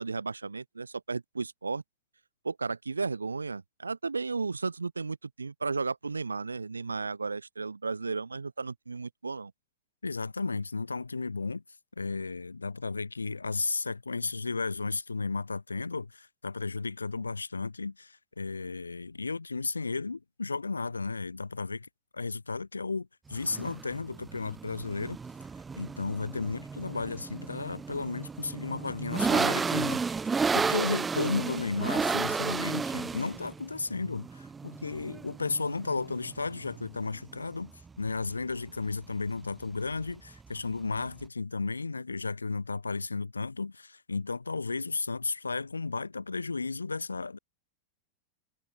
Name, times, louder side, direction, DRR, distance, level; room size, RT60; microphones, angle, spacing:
voice 1, 0.0-1.8 2.4-9.5, right 4 dB, 80° right, 3.2 m, -34 dB
voice 2, 10.0-11.6 12.0-25.2 25.7-30.0 30.3-37.7 38.0-47.4, left 4 dB, 80° left, 1.1 m, -34 dB
sound 1, 23.3-41.3, right 5 dB, 15° right, 0.4 m, -33 dB
figure-of-eight pair, 90°, 0 cm